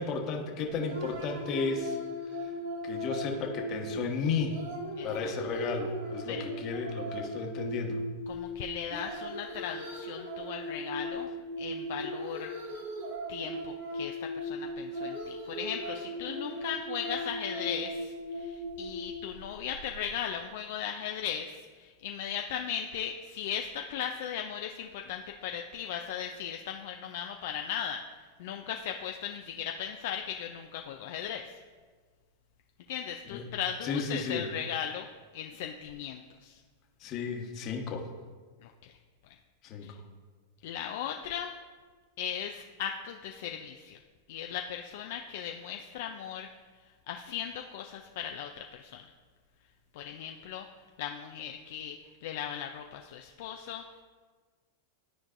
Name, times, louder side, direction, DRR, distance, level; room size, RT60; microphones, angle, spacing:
voice 1, 0.0-2.0 2.4-2.5 2.8-4.6 5.0-8.0 33.3-33.5 33.8-34.4 37.0-38.0 39.6-39.9, left 5 dB, 45° left, 2 dB, 1.2 m, -33 dB
sound 1, 0.6-20.1, equal, 85° right, 1.9 m, -38 dB
voice 2, 5.0-5.3 6.3-6.4 8.3-11.3 11.6-12.5 13.3-28.0 28.4-31.5 32.9-35.1 35.3-36.6 38.8-38.9 39.8-39.9 40.6-41.5 42.2-44.0 44.3-46.5 47.1-49.0 49.9-50.7 51.0-53.8, left 9 dB, 65° left, 3 dB, 0.4 m, -37 dB
12.0 x 4.6 x 2.5 m, 1.5 s
hypercardioid pair, 105°, 0 cm